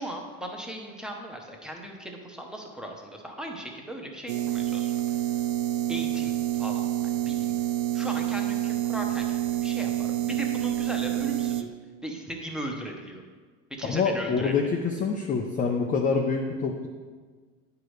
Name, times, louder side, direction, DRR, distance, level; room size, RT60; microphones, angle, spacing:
voice 1, 0.0-5.2 5.9-6.9 7.3-7.5 7.9-11.7 12.0-13.2 13.7-14.6, right 1 dB, ahead, 1 dB, 0.8 m, -37 dB
sound 1, 4.3-11.6, right 13 dB, 60° right, 0.5 m, -28 dB
voice 2, 13.8-16.9, left 5 dB, 20° left, 2 dB, 0.4 m, -26 dB
8.9 x 4.9 x 3.1 m, 1.5 s
supercardioid pair, 105°, 37 cm